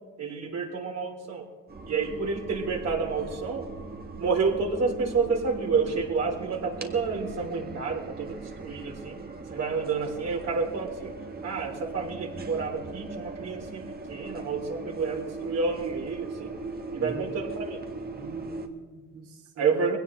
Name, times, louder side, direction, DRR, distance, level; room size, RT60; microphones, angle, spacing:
voice 1, 0.2-1.4 1.9-3.7 4.2-9.2 9.5-11.1 11.4-16.5 16.9-17.8 19.6-20.0, right 5 dB, 55° right, 1 dB, 3.2 m, -29 dB
sound 1, 1.7-18.7, right 3 dB, 30° right, 1.7 m, -39 dB
voice 2, 18.2-19.9, right 4 dB, 85° right, 1 dB, 2.9 m, -42 dB
20.5 x 17.0 x 3.2 m, 1.4 s
cardioid pair, 90°, 30 cm